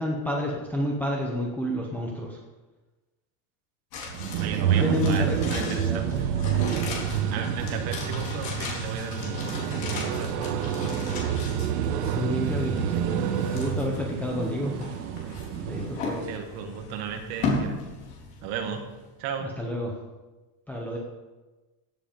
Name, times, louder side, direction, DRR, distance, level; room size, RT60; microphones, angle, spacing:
voice 1, 0.0-2.4 4.8-6.0 12.1-12.9 13.5-14.8 15.6-16.3 19.4-19.9 20.7-21.0, equal, 5° left, -3 dB, 0.6 m, -29 dB
sound 1, 3.9-19.1 19.4-19.5, left 3 dB, 55° left, 3.9 m, -37 dB
sound 2, 4.1-16.1, right 8 dB, 70° right, 1.2 m, -29 dB
voice 2, 4.4-6.3 7.3-9.5 9.9-10.3 10.6-11.0 16.3-17.8 18.4-18.9 19.2-19.5, right 7 dB, 40° right, 5 dB, 1.6 m, -35 dB
sound 3, 6.7-13.7, right 4 dB, 90° right, 2.2 m, -35 dB
16.0 x 7.8 x 5.1 m, 1.2 s
supercardioid pair, 180°, 47 cm